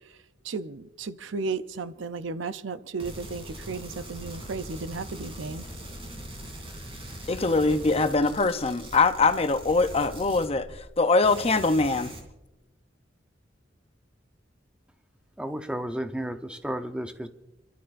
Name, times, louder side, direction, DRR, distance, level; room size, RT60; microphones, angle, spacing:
voice 1, 0.5-5.6, right 4 dB, 80° right, 0.6 m, -34 dB
sound 1, 3.0-11.0 11.2-12.2, right 1 dB, 30° right, 3.0 m, -41 dB
voice 2, 7.3-10.7 11.0-12.1, left 3 dB, 30° left, 0.7 m, -23 dB
voice 3, 15.4-17.3, right 1 dB, 5° right, 0.8 m, -32 dB
29.5 x 12.0 x 2.6 m
head